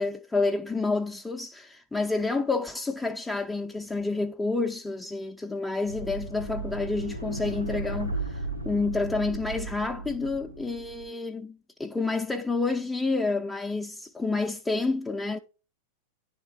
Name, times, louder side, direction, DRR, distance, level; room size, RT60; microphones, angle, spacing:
voice 1, 0.0-15.4, left 3 dB, 10° left, 0.5 m, -29 dB
sound 1, 5.8-11.1, right 2 dB, 85° right, 1.7 m, -35 dB
10.5 x 3.6 x 4.5 m
figure-of-eight pair, 90°, 0 cm